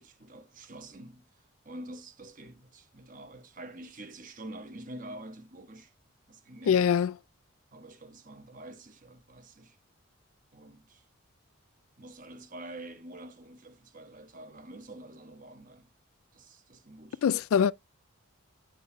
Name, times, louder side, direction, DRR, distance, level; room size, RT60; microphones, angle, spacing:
voice 1, 0.0-5.9 6.3-6.9 7.7-9.8 10.5-11.0 12.0-15.9 16.3-17.2, right 1 dB, 35° right, 1.3 m, -47 dB
voice 2, 6.7-7.1 17.2-17.7, left 7 dB, 75° left, 0.3 m, -23 dB
8.1 x 6.6 x 2.2 m
head